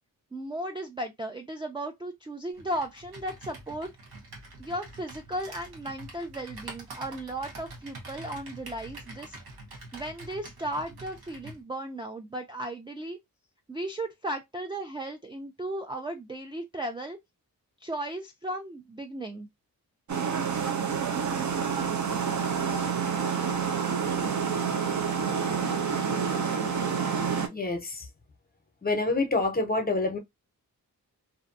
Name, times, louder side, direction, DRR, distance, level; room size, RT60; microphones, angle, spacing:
voice 1, 0.3-3.9 4.6-9.4 9.9-13.2 13.7-17.2 17.8-19.5, right 1 dB, 15° right, 0.3 m, -35 dB
Computer keyboard, 2.5-11.6, right 2 dB, 90° right, 1.0 m, -45 dB
sound 1, 20.1-27.5, right 6 dB, 55° right, 0.6 m, -28 dB
voice 2, 26.1-27.1 27.5-28.1 28.8-30.2, left 3 dB, 25° left, 0.7 m, -29 dB
2.6 x 2.2 x 2.5 m
cardioid pair, 80°, 36 cm